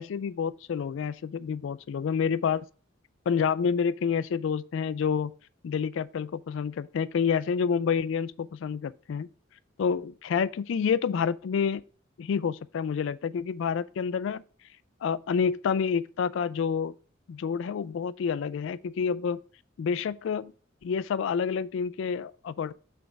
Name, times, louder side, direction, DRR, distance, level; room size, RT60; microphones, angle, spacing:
voice 1, 0.0-2.6 3.3-5.3 5.6-9.3 9.8-11.8 12.2-14.4 15.0-16.9 17.3-19.4 19.8-20.5 20.8-22.7, left 6 dB, 65° left, 0.3 m, -28 dB
6.3 x 3.4 x 5.8 m
head